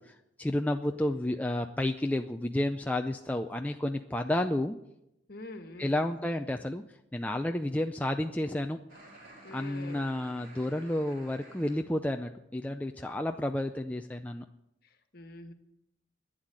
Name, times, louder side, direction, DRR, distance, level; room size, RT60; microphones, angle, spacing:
voice 1, 0.0-4.8 5.8-6.8 7.1-8.8 9.5-14.4, left 1 dB, 10° left, 5 dB, 0.4 m, -31 dB
voice 2, 0.9-1.3 5.3-6.0 9.4-10.1 14.8-15.5, left 2 dB, 50° left, 6 dB, 1.5 m, -46 dB
sound 1, 8.9-11.8, right 1 dB, 50° right, 4.3 m, -53 dB
11.5 x 9.0 x 9.3 m, 0.86 s
head